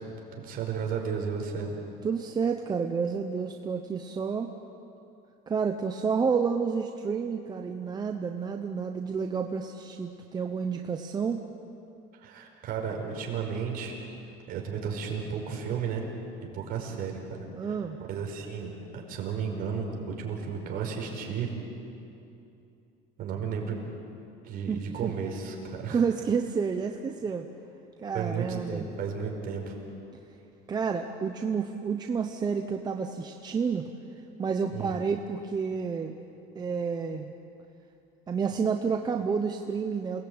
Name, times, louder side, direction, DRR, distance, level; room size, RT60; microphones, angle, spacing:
voice 1, 0.3-1.7 12.2-13.9 14.5-16.0 16.4-17.7 18.1-21.5 23.2-23.8 24.4-26.0 28.1-29.7 34.7-34.9, right 6 dB, 50° right, 0 dB, 5.1 m, -33 dB
voice 2, 2.0-4.5 5.5-11.5 17.5-18.0 24.7-25.1 25.9-27.5 28.0-28.9 30.7-33.9 34.4-36.2 36.5-37.3 38.3-40.3, right 6 dB, 20° right, 4 dB, 0.9 m, -30 dB
29.0 x 19.5 x 8.8 m, 2.8 s
cardioid pair, 160°, 20 cm